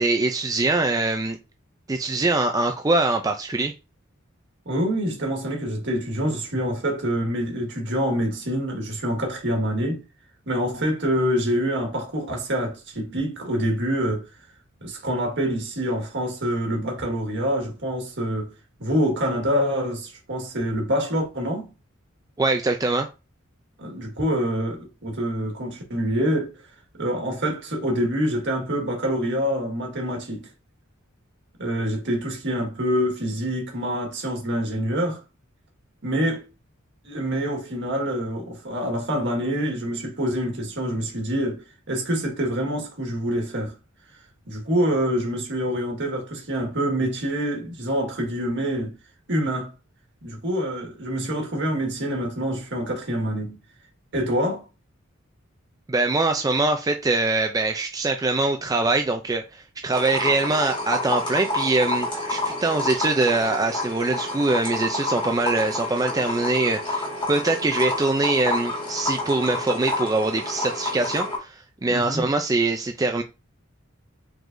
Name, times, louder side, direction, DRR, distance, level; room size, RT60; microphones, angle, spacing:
voice 1, 0.0-1.4 1.9-3.7 22.4-23.1 55.9-73.2, right 2 dB, 15° right, 0.4 m, -23 dB
voice 2, 4.6-10.0 10.5-14.3 14.8-18.5 18.8-21.7 23.8-26.5 27.0-30.5 31.6-35.2 36.0-36.5 37.0-43.7 44.5-49.0 49.3-49.7 50.2-53.6 54.1-54.6 71.9-72.2, equal, 60° right, 1.7 m, -26 dB
sound 1, 59.9-71.4, left 2 dB, 25° left, 1.8 m, -29 dB
4.8 x 3.9 x 2.6 m
head